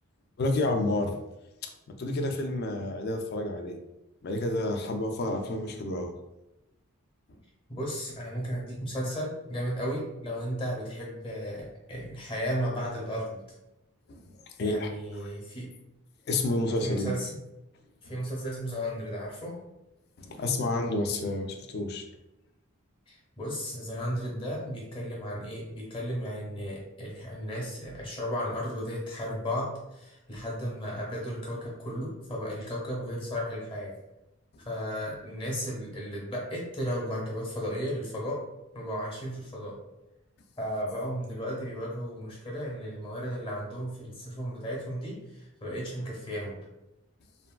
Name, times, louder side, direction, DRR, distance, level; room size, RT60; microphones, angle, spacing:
voice 1, 0.4-1.1 1.6-1.7 2.0-3.8 4.2-6.1 14.1-14.2 14.6-14.9 15.2-15.3 16.3-17.1 20.2-22.1, left 2 dB, 50° left, 4 dB, 0.3 m, -29 dB
voice 2, 7.7-13.3 14.6-15.7 16.8-17.4 18.0-19.6 23.1-33.9 34.6-38.4 38.7-39.8 40.6-46.6, equal, 25° left, -3 dB, 0.8 m, -34 dB
3.4 x 2.2 x 2.3 m, 0.93 s
head